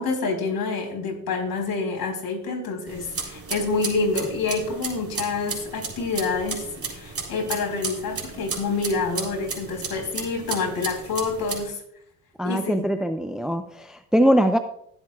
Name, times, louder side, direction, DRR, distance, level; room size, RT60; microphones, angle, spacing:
voice 1, 0.0-11.8 12.4-12.8, left 4 dB, 55° left, 1 dB, 4.5 m, -27 dB
sound 1, 2.9-11.7, right 4 dB, 30° right, 3.7 m, -34 dB
voice 2, 12.4-14.6, equal, ahead, 8 dB, 0.7 m, -22 dB
20.0 x 8.1 x 2.4 m, 0.72 s
supercardioid pair, 65°, 44 cm